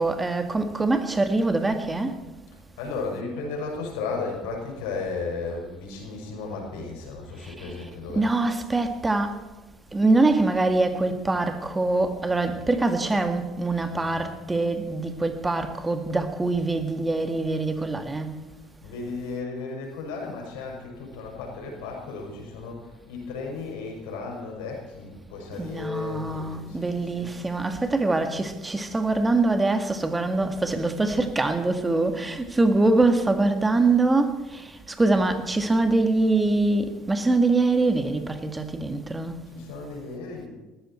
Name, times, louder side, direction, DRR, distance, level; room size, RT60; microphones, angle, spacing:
voice 1, 0.0-2.2 7.4-7.7 8.1-9.4 9.9-18.4 25.6-39.4, right 2 dB, 15° right, 1.9 m, -24 dB
voice 2, 2.8-8.3 18.5-27.3 39.5-40.5, left 4 dB, 85° left, 5.9 m, -34 dB
19.5 x 14.0 x 4.5 m
supercardioid pair, 95°, 0 cm